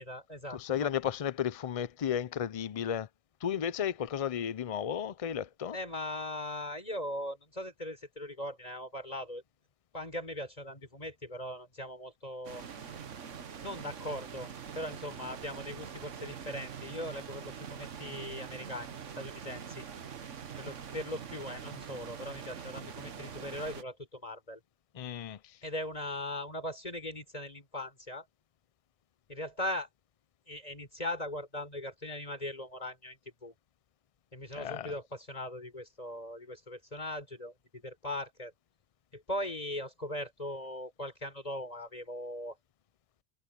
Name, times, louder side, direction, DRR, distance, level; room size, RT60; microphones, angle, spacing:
voice 1, 0.0-0.9 5.7-9.4 9.9-12.6 13.6-19.9 20.6-24.6 25.6-28.3 29.3-29.9 30.5-33.5 34.3-38.5 39.1-42.6, left 1 dB, 30° left, 5.2 m, -39 dB
voice 2, 0.5-3.1 3.4-5.8 25.0-25.4 34.6-34.9, left 9 dB, 65° left, 0.3 m, -33 dB
sound 1, 12.4-23.8, right 7 dB, 75° right, 1.5 m, -44 dB
omnidirectional pair, 1.3 m